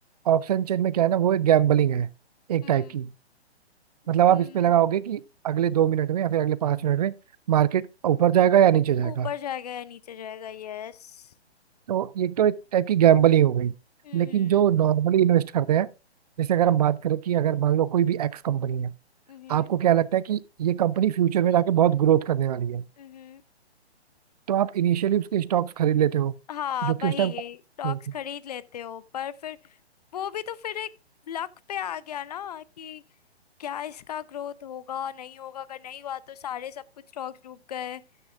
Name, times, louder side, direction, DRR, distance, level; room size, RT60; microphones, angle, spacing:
voice 1, 0.3-2.1 2.5-3.1 4.1-7.1 7.5-9.3 11.9-13.7 14.1-15.9 16.4-18.9 19.5-22.8 24.5-26.4 26.8-27.3 27.8-28.0, right 10 dB, 35° right, 0.5 m, -22 dB
voice 2, 2.6-3.0 4.2-4.8 9.0-11.3 14.0-14.7 19.3-19.7 23.0-23.4 26.5-29.8 30.1-30.9 31.3-33.0 33.6-36.8 37.1-38.0, left 10 dB, 40° left, 0.6 m, -36 dB
12.5 x 9.3 x 2.4 m
figure-of-eight pair, 135°, 33 cm